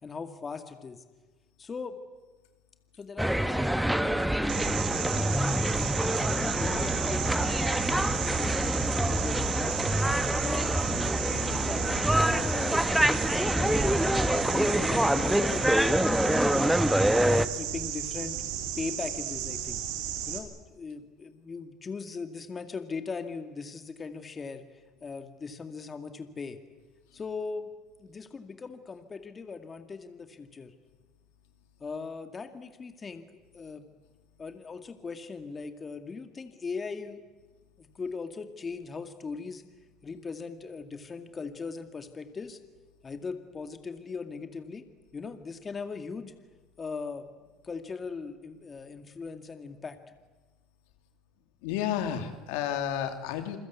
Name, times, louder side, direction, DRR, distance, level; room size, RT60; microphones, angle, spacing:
voice 1, 0.0-1.0 1.6-2.0 3.0-5.9 6.4-8.7 9.1-9.7 10.4-10.7 11.0-13.9 14.3-16.7 17.2-18.4 18.8-19.8 20.3-24.6 25.0-26.6 27.1-27.7 28.0-30.7 31.8-33.3 33.5-33.9 34.4-37.2 37.8-39.6 40.0-42.6 43.0-44.8 45.1-46.3 46.8-47.3 47.6-50.0, left 4 dB, 30° left, 7 dB, 2.1 m, -39 dB
sound 1, 3.2-17.5, right 1 dB, 5° right, 1.2 m, -26 dB
sound 2, 4.5-20.4, right 10 dB, 80° right, 3.4 m, -34 dB
voice 2, 51.6-53.6, left 9 dB, 85° left, 6 dB, 2.8 m, -31 dB
28.0 x 21.0 x 8.4 m, 1.2 s
supercardioid pair, 95°, 0 cm